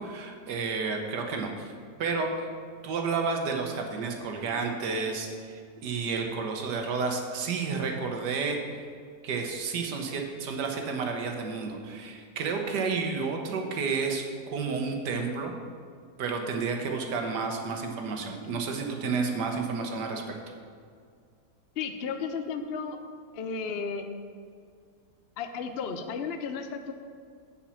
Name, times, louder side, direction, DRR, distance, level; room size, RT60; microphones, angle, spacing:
voice 1, 0.0-1.7 2.0-2.3 2.8-5.3 5.8-8.6 9.2-14.2 14.5-15.6 16.2-20.2, right 4 dB, 85° right, 3 dB, 1.6 m, -31 dB
voice 2, 21.8-23.0 23.3-24.0 25.4-26.9, left 5 dB, 65° left, 7 dB, 0.6 m, -33 dB
7.3 x 5.6 x 7.1 m, 2.2 s
omnidirectional pair, 1.8 m